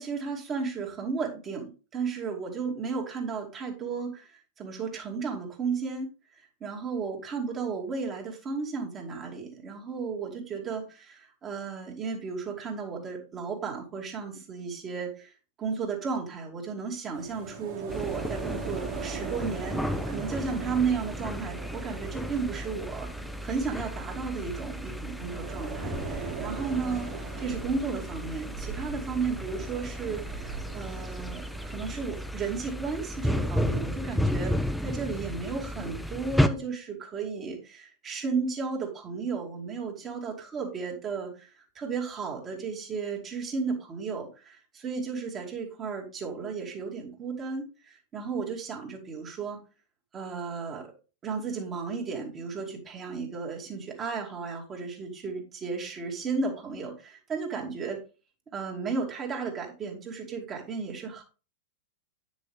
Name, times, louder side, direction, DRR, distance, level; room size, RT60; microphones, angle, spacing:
voice 1, 0.0-1.6 1.9-15.3 15.6-49.6 50.1-50.9 51.2-58.0 58.5-61.2, right 5 dB, 25° right, -1 dB, 2.7 m, -34 dB
sound 1, 17.1-32.3, right 4 dB, 50° right, 2.5 m, -40 dB
sound 2, 17.9-36.5, equal, ahead, 0.6 m, -33 dB
9.9 x 6.3 x 3.6 m, 0.33 s
figure-of-eight pair, 90°, 0 cm